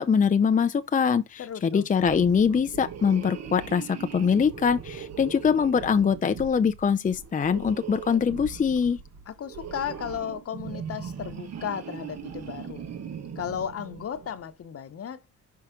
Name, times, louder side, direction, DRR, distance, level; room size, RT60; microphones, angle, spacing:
voice 1, 0.0-9.0, left 6 dB, 25° left, 0.6 m, -23 dB
voice 2, 1.4-1.9 9.3-12.8 13.4-15.2, left 8 dB, 50° left, 1.0 m, -35 dB
sound 1, 2.0-14.4, right 7 dB, 60° right, 1.6 m, -40 dB
5.8 x 4.7 x 3.7 m
cardioid pair, 90°, 30 cm